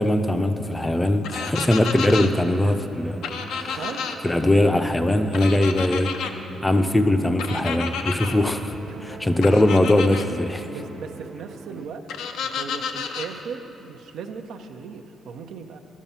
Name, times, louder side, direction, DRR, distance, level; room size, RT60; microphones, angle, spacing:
voice 1, 0.0-3.8 4.2-6.1 6.6-8.8 9.0-10.7, left 1 dB, 15° left, 7 dB, 0.5 m, -21 dB
sound 1, 0.7-11.9, right 4 dB, 40° right, 0.5 m, -42 dB
sound 2, 1.2-2.3 3.2-4.2 5.3-6.3 7.4-8.3 9.4-10.3 12.1-13.3, left 6 dB, 85° left, 0.6 m, -30 dB
voice 2, 10.7-12.0 12.4-15.8, right 6 dB, 80° right, 5 dB, 0.7 m, -37 dB
11.5 x 7.3 x 5.5 m, 3.0 s
cardioid pair, 90°, 0 cm